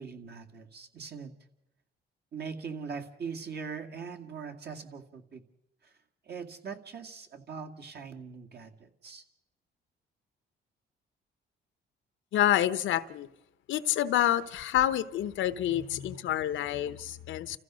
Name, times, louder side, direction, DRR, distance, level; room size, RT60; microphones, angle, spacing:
voice 1, 0.0-1.3 2.3-5.4 5.8-5.9 6.3-9.2, right 5 dB, 55° right, 4 dB, 2.4 m, -41 dB
voice 2, 12.3-13.3 13.7-17.6, left 12 dB, 75° left, 14 dB, 1.0 m, -28 dB
29.5 x 15.0 x 6.3 m, 0.90 s
cardioid pair, 90°, 20 cm